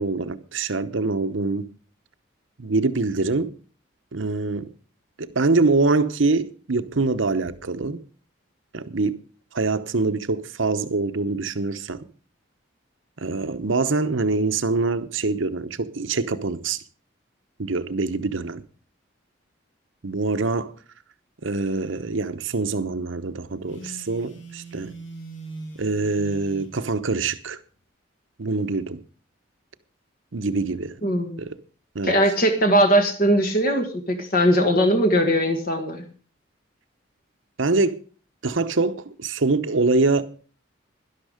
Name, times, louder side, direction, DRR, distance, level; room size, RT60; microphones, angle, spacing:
voice 1, 0.0-1.7 2.6-3.5 4.1-4.7 5.2-8.0 8.7-9.2 9.5-12.1 13.2-16.8 17.6-18.6 20.0-20.7 21.4-24.9 25.8-27.6 28.4-29.0 30.3-30.9 31.4-31.6 31.9-32.2 37.6-38.0 38.4-40.2, right 3 dB, 80° right, 0.9 m, -24 dB
Telephone, 23.6-26.8, right 2 dB, 75° left, 2.5 m, -40 dB
voice 2, 31.0-31.4 32.0-36.0, equal, 45° left, 1.7 m, -20 dB
12.0 x 11.5 x 5.0 m
head